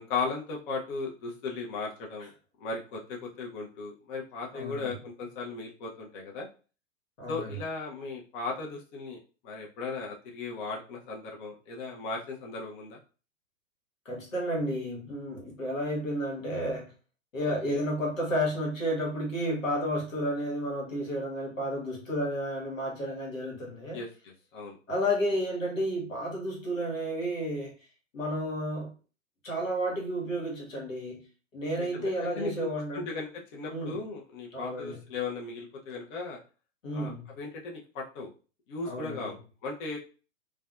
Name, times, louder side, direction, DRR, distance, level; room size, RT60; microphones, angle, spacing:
voice 1, 0.0-2.3 2.6-6.5 7.3-9.2 9.4-13.0 17.7-17.8 23.9-24.8 31.8-32.7 32.9-36.4 36.9-38.3 38.7-40.0, left 4 dB, 40° left, -1 dB, 0.7 m, -37 dB
voice 2, 4.5-4.9 7.2-7.5 14.0-16.9 17.3-24.0 24.9-27.7 28.1-28.9 29.4-31.2 31.5-33.0 33.7-34.0 34.5-35.1 36.8-37.4 38.8-39.3, equal, 90° left, -2 dB, 1.2 m, -31 dB
2.5 x 2.2 x 2.3 m, 0.35 s
hypercardioid pair, 110°, 39 cm